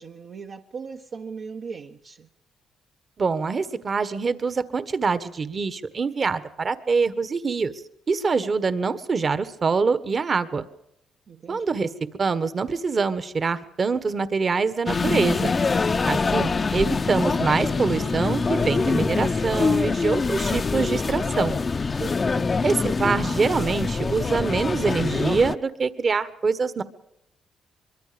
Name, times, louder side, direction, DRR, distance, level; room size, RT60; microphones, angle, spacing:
voice 1, 0.0-2.3 11.3-11.7 22.0-22.5, right 5 dB, 55° right, 1.1 m, -38 dB
voice 2, 3.2-7.7 8.1-10.7 11.5-11.9 12.2-15.5 16.1-21.6 22.6-26.8, right 4 dB, 40° right, 1.5 m, -25 dB
sound 1, 14.9-25.6, left 4 dB, 30° left, 0.7 m, -24 dB
24.0 x 23.0 x 5.2 m
cardioid pair, 90°, 0 cm